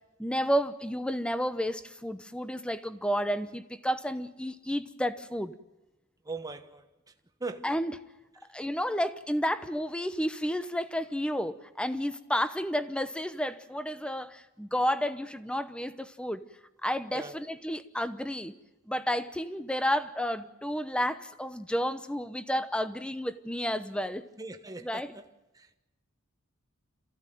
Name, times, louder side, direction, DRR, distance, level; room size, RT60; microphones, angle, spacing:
voice 1, 0.2-5.5 7.6-8.0 8.5-16.5 16.8-18.5 18.9-24.3 24.8-25.2, equal, 5° left, 0.9 m, -31 dB
voice 2, 6.3-6.8 7.4-7.7 17.1-17.3 24.4-25.2, right 3 dB, 15° right, 1.2 m, -39 dB
27.5 x 15.5 x 9.2 m
head